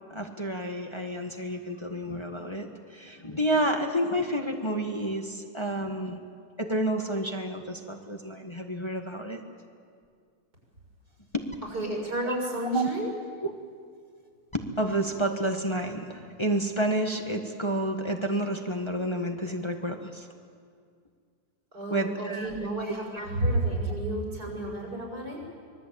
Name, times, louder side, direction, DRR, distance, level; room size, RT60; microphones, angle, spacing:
voice 1, 0.1-6.2 6.6-9.4 11.3-11.5 12.2-12.3 12.7-12.9 13.4-13.5 14.5-20.3 21.9-22.5 23.1-23.3, right 1 dB, 20° left, 3 dB, 1.6 m, -30 dB
voice 2, 11.6-13.1 21.7-25.4, right 1 dB, 90° right, 0 dB, 7.1 m, -31 dB
25.0 x 22.0 x 8.7 m, 2.2 s
omnidirectional pair, 1.7 m